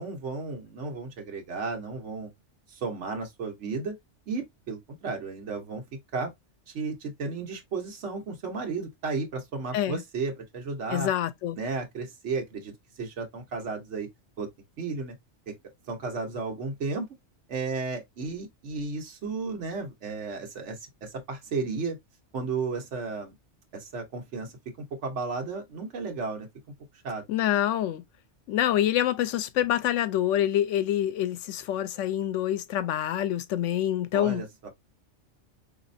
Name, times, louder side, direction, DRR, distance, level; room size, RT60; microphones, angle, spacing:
voice 1, 0.0-2.3 2.7-3.9 4.3-5.8 6.1-6.3 6.7-11.1 11.6-14.1 14.4-14.5 14.8-15.1 15.5-15.6 15.9-17.1 17.5-22.0 22.3-23.3 23.7-24.5 24.8-26.5 27.0-27.2 34.1-34.7, right 4 dB, 70° right, 1.3 m, -33 dB
voice 2, 10.9-11.6 27.3-28.0 28.5-34.4, left 11 dB, 80° left, 0.9 m, -26 dB
4.1 x 3.0 x 2.6 m
omnidirectional pair, 1.2 m